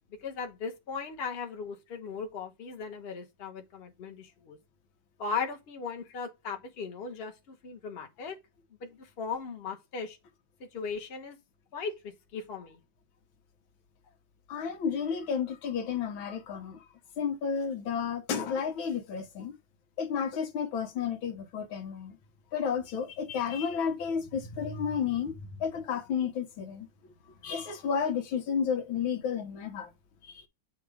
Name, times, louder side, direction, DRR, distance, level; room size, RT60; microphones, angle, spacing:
voice 1, 0.1-4.6 5.2-8.4 8.8-10.2 10.6-11.4 11.7-12.8, left 5 dB, 35° left, 1.1 m, -38 dB
voice 2, 14.5-16.8 17.2-19.6 20.0-22.2 22.5-26.9 27.4-29.9 30.2-30.4, left 7 dB, 85° left, 1.8 m, -32 dB
8.2 x 2.8 x 4.8 m
omnidirectional pair, 2.1 m